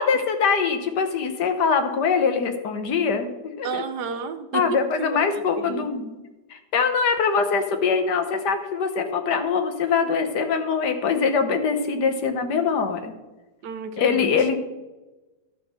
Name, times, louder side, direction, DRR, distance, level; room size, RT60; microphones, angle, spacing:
voice 1, 0.0-3.8 4.5-6.1 6.5-13.1 14.0-14.6, left 5 dB, 75° left, 7 dB, 1.7 m, -23 dB
voice 2, 3.6-4.8 5.1-5.8 13.6-14.3, right 6 dB, 75° right, 9 dB, 1.4 m, -32 dB
12.0 x 5.6 x 6.4 m, 1.1 s
omnidirectional pair, 1.8 m